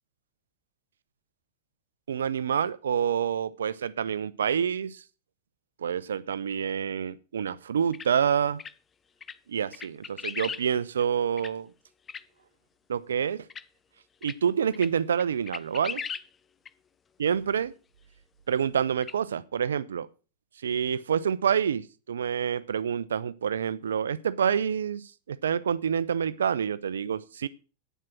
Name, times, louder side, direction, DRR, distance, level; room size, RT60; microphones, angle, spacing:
voice 1, 2.1-5.0 5.8-8.6 9.5-11.7 12.9-13.5 14.2-16.0 17.2-17.7 18.5-20.1 20.6-27.5, right 8 dB, 65° right, 18 dB, 0.7 m, -27 dB
sound 1, 7.9-8.1 8.6-8.7 9.2-9.4 9.7-10.6 11.0-11.1 11.4-11.5 12.1-12.2 13.5-13.6 14.2-14.4 14.7-14.9 15.2-16.3 16.6-16.7 19.0-19.1, left 6 dB, 20° left, 0.5 m, -37 dB
9.4 x 7.5 x 7.5 m, 0.35 s
figure-of-eight pair, 90°, 0 cm